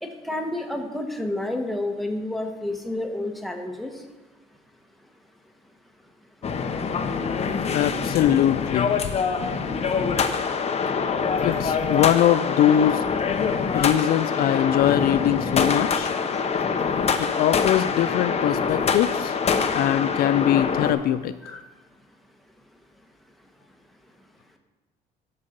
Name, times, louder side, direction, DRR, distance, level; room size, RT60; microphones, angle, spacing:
voice 1, 0.0-4.0 7.2-7.8 21.4-21.6, left 1 dB, ahead, 3 dB, 1.3 m, -30 dB
sound 1, 6.4-20.9, left 5 dB, 40° left, 0.9 m, -25 dB
voice 2, 7.7-9.1 9.4-9.5 11.4-13.1 13.7-16.1 17.2-19.4 19.7-21.6, left 11 dB, 65° left, 12 dB, 0.4 m, -22 dB
12.5 x 5.5 x 5.2 m, 1.2 s
cardioid pair, 110°, 17 cm